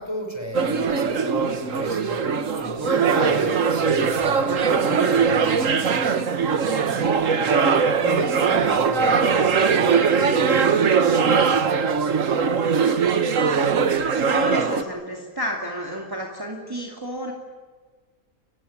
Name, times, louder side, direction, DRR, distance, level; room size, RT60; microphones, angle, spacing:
voice 1, 0.0-6.0 6.5-11.8, left 1 dB, 20° left, 2 dB, 5.6 m, -35 dB
sound 1, 0.5-14.8, right 6 dB, 65° right, 1.7 m, -21 dB
voice 2, 14.1-17.3, right 1 dB, 15° right, 0 dB, 2.6 m, -30 dB
30.0 x 15.5 x 10.0 m, 1.4 s
omnidirectional pair, 1.5 m